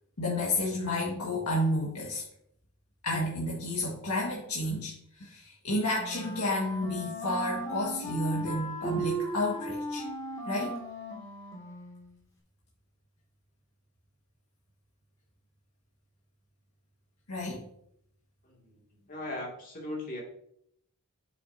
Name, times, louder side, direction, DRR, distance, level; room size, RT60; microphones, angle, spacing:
voice 1, 0.2-2.2 3.0-10.0 10.5-10.8 17.3-17.6, left 1 dB, 85° left, -4 dB, 1.8 m, -31 dB
Wind instrument woodwind instrument, 5.9-12.2, right 1 dB, 15° left, 2.4 m, -37 dB
voice 2, 18.4-18.8 19.1-20.2, left 1 dB, 40° left, -2 dB, 2.5 m, -38 dB
8.6 x 8.3 x 2.8 m, 0.71 s
head